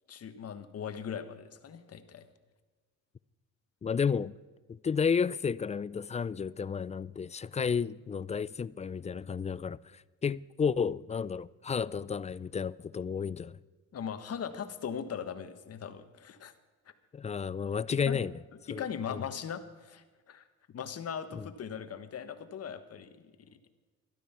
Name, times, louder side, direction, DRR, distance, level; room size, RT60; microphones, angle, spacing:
voice 1, 0.1-2.2 13.9-16.5 17.9-18.2 18.7-20.4 20.7-23.5, left 7 dB, 55° left, 1.4 m, -39 dB
voice 2, 3.8-4.3 4.7-13.6 17.1-18.4 18.7-18.8 19.1-19.2 21.3-21.5, left 6 dB, 25° left, 0.3 m, -32 dB
12.5 x 12.5 x 5.7 m
cardioid pair, 90°, 30 cm